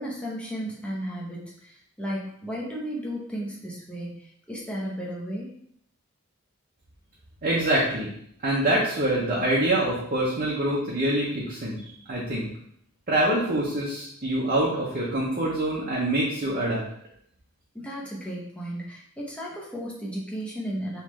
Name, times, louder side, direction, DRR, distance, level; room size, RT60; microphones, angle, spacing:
voice 1, 0.0-5.5 17.7-21.0, equal, 5° left, -4 dB, 0.7 m, -34 dB
voice 2, 7.4-8.1 8.4-11.8 12.1-12.5 13.1-16.8, right 1 dB, 40° right, -6 dB, 0.7 m, -25 dB
3.6 x 3.1 x 3.1 m, 0.68 s
head